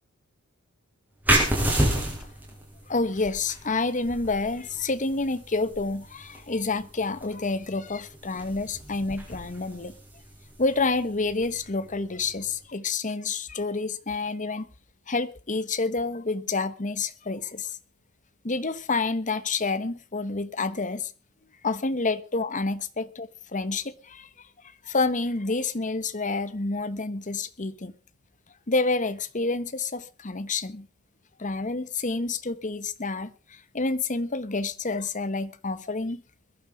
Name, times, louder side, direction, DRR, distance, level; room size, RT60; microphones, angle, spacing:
sound 1, 1.2-12.5, right 1 dB, 5° right, 6.4 m, -31 dB
voice 1, 2.9-10.0 10.6-14.7 15.1-17.8 18.4-21.1 21.6-24.5 24.8-27.9 28.7-30.9 31.4-36.2, left 3 dB, 35° left, 1.1 m, -28 dB
21.5 x 11.0 x 4.8 m
head